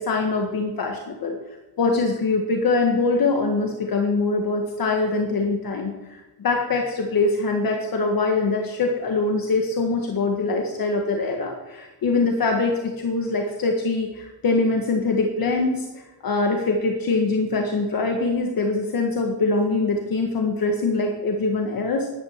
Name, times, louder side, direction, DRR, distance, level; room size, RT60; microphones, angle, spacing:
voice 1, 0.0-1.3 1.8-15.9 16.2-22.1, left 3 dB, 50° left, 2 dB, 1.6 m, -23 dB
11.5 x 10.5 x 7.3 m, 1.1 s
cardioid pair, 145°, 45 cm